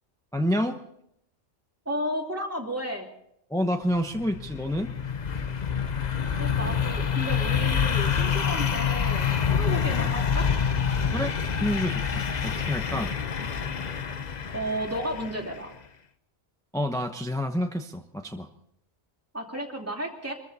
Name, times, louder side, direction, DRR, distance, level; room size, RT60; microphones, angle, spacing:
voice 1, 0.3-0.8 3.5-4.9 11.1-11.3 11.6-13.1 16.7-18.5, equal, 5° left, 5 dB, 0.8 m, -28 dB
voice 2, 1.9-3.1 6.4-10.5 14.5-15.7 19.3-20.3, equal, 10° right, 0 dB, 2.7 m, -33 dB
sound 1, 4.0-15.7, left 7 dB, 40° left, 0.9 m, -27 dB
24.0 x 14.5 x 4.2 m, 0.76 s
omnidirectional pair, 1.2 m